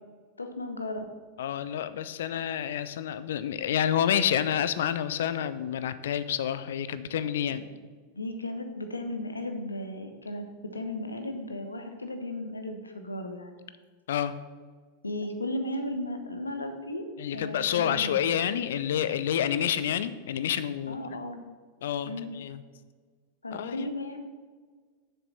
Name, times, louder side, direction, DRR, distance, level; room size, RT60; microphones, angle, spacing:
voice 1, 0.4-1.1 7.5-7.6 8.1-10.5 10.7-13.7 15.0-17.1 17.3-18.3 20.9-21.4 22.0-22.3 23.4-24.2, left 1 dB, 80° left, 6 dB, 1.0 m, -35 dB
voice 2, 1.4-7.6 14.1-14.3 17.2-21.0 21.8-22.6 23.5-23.9, left 9 dB, 60° left, 14 dB, 0.5 m, -28 dB
7.4 x 6.8 x 5.6 m, 1.5 s
figure-of-eight pair, 90°, 0 cm